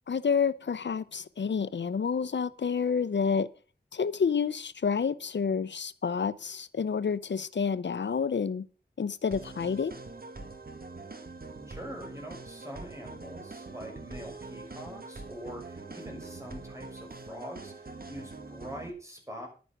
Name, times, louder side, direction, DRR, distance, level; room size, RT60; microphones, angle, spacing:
voice 1, 0.1-3.5 3.9-8.6 9.0-9.9, left 6 dB, 85° left, 0.6 m, -29 dB
sound 1, 9.3-18.9, right 3 dB, 55° right, 1.9 m, -44 dB
voice 2, 11.7-19.5, equal, 15° right, 6.1 m, -44 dB
11.0 x 9.5 x 5.9 m
wide cardioid pair, 60°, 18 cm